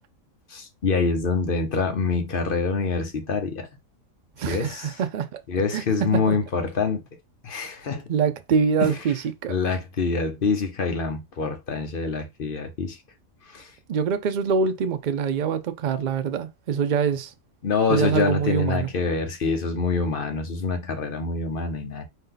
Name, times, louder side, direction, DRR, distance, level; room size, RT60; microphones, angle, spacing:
voice 1, 0.5-3.7 4.5-4.8 5.5-7.0 7.4-8.0 8.8-8.9 9.5-13.0 13.5-13.7 17.6-22.1, left 4 dB, 45° left, 0.9 m, -25 dB
voice 2, 4.4-5.3 5.7-5.8 6.1-6.4 8.1-9.5 13.9-17.3 17.9-18.9, right 6 dB, 65° right, 0.4 m, -24 dB
4.7 x 2.8 x 3.8 m
omnidirectional pair, 1.4 m